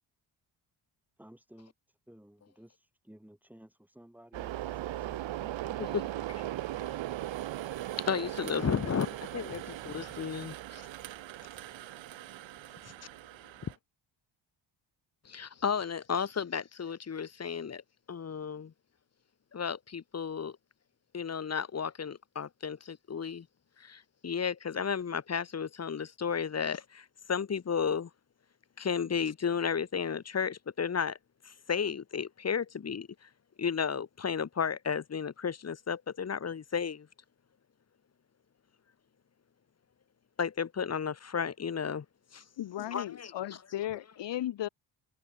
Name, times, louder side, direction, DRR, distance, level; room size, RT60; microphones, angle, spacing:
voice 1, 1.2-6.6, right 1 dB, 5° right, 7.6 m, -56 dB
sound 1, 4.3-13.8, right 14 dB, 75° right, 1.4 m, -39 dB
voice 2, 7.8-10.8 15.2-17.8 18.1-18.7 19.5-20.5 21.1-23.5 23.8-28.1 28.8-31.2 31.4-33.1 33.6-37.1 40.4-42.0 42.3-42.4 42.8-43.3, left 6 dB, 35° left, 1.5 m, -33 dB
voice 3, 42.6-44.7, left 13 dB, 65° left, 1.4 m, -36 dB
cardioid pair, 115°, 46 cm